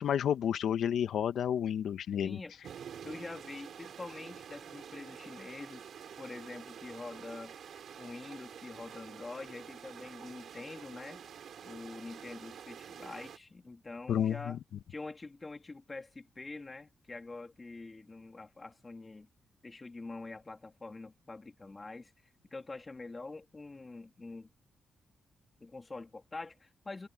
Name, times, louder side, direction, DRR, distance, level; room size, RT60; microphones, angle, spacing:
voice 1, 0.0-2.4 14.1-14.6, left 9 dB, 80° left, 0.9 m, -30 dB
voice 2, 2.2-2.5 3.0-5.9 6.2-7.5 8.0-11.2 11.6-14.6 14.9-19.3 19.6-22.1 22.5-24.5 25.6-27.1, left 3 dB, 30° left, 2.5 m, -45 dB
sound 1, 2.6-13.4, right 8 dB, 75° right, 6.3 m, -48 dB
cardioid pair, 85°, 0 cm